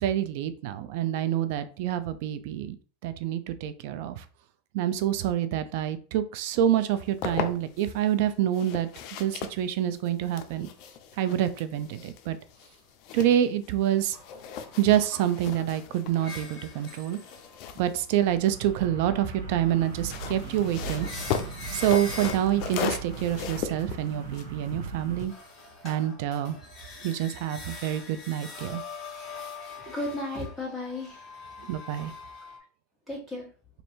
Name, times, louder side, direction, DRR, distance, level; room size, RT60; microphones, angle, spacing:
voice 1, 0.0-2.8 3.0-4.2 4.7-8.9 9.2-10.7 11.2-12.4 13.1-14.2 14.8-17.2 17.8-21.1 21.7-25.3 25.8-26.6 27.0-28.8 31.7-32.1, right 11 dB, 60° right, 11 dB, 0.5 m, -27 dB
sound 1, 6.8-7.9 8.5-13.9 14.2-18.8 19.8-25.4, left 7 dB, 50° left, 0.5 m, -37 dB
sound 2, 13.8-18.1 19.6-23.2 24.8-32.6, left 3 dB, 20° left, 1.7 m, -44 dB
sound 3, 18.1-25.3, right 5 dB, 75° right, 1.2 m, -39 dB
voice 2, 29.7-31.4 33.1-33.5, left 1 dB, ahead, -6 dB, 1.8 m, -35 dB
3.2 x 2.6 x 4.4 m, 0.39 s
supercardioid pair, 135°, 0 cm